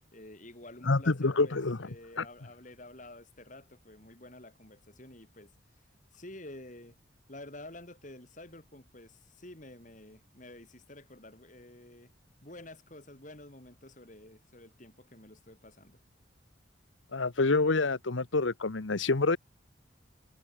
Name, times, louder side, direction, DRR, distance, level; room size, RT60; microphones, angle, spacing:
voice 1, 0.1-5.5 6.1-7.0 7.3-12.1 12.4-16.0, left 1 dB, 40° left, 4.1 m, -50 dB
voice 2, 0.8-1.9 2.2-2.3 17.1-19.4, left 3 dB, 85° left, 1.1 m, -27 dB
head